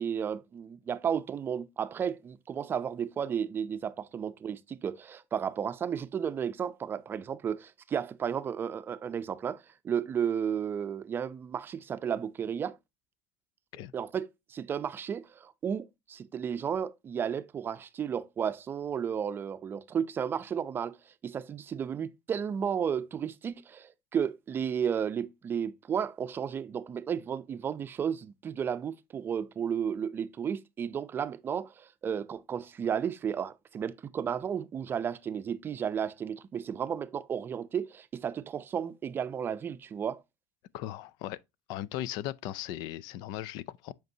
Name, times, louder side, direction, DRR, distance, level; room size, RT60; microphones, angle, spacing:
voice 1, 0.0-12.8 13.9-40.2, right 8 dB, 30° right, 0.5 m, -33 dB
voice 2, 40.7-41.4 41.7-43.9, left 13 dB, 70° left, 0.4 m, -37 dB
7.9 x 5.2 x 2.7 m
cardioid pair, 135°, 7 cm